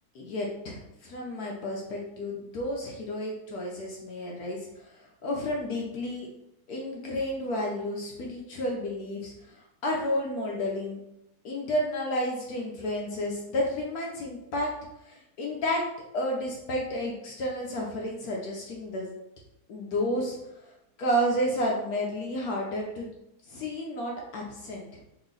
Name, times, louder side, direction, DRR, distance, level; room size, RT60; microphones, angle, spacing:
voice 1, 0.1-4.9 5.2-6.3 6.7-9.5 9.8-11.0 11.4-14.7 15.0-15.8 16.1-19.1 19.7-20.4 21.0-23.1 23.5-25.0, equal, 70° left, -2 dB, 0.9 m, -31 dB
3.2 x 3.0 x 3.7 m, 0.85 s
omnidirectional pair, 2.4 m